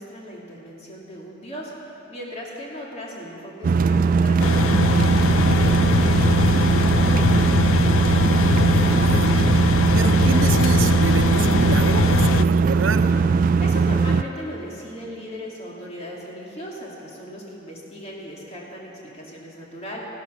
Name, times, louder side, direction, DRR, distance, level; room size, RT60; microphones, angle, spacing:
voice 1, 0.0-1.7 2.1-7.4 13.4-20.0, equal, 35° left, -3 dB, 2.6 m, -38 dB
sound 1, 3.6-14.2, right 5 dB, 45° right, 0.3 m, -19 dB
sound 2, 4.4-12.4, left 8 dB, 90° left, 0.3 m, -23 dB
voice 2, 8.1-9.4 9.9-13.1, right 3 dB, 90° right, 7 dB, 0.8 m, -28 dB
15.0 x 12.0 x 6.4 m, 2.9 s
head